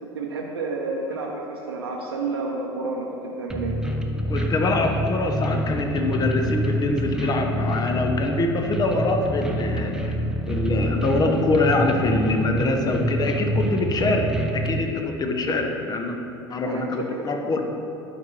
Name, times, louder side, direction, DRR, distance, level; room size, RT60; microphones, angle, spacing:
voice 1, 0.0-3.8 16.6-17.3, right 3 dB, 80° right, -1 dB, 0.7 m, -30 dB
sound 1, 3.5-14.7, equal, 5° right, 0.8 m, -26 dB
voice 2, 4.3-10.2 10.5-16.2 16.5-17.6, left 2 dB, 30° left, 4 dB, 1.0 m, -24 dB
11.0 x 5.1 x 4.5 m, 2.9 s
figure-of-eight pair, 70°, 13 cm